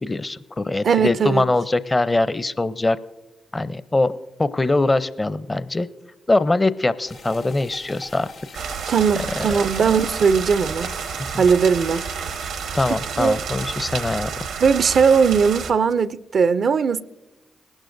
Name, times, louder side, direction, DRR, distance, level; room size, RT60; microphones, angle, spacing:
voice 1, 0.0-3.0 3.5-5.9 6.3-8.3 9.4-10.0 11.3-11.4 12.8-14.3, left 2 dB, 30° left, 0.6 m, -22 dB
voice 2, 0.8-1.5 8.9-10.9 11.4-12.0 13.2-13.4 14.6-17.0, right 6 dB, 65° right, 0.4 m, -18 dB
sound 1, 7.1-12.9, left 2 dB, 90° left, 2.0 m, -43 dB
sound 2, 8.5-15.7, right 6 dB, 85° right, 0.9 m, -30 dB
20.0 x 11.5 x 2.6 m
supercardioid pair, 40°, 0 cm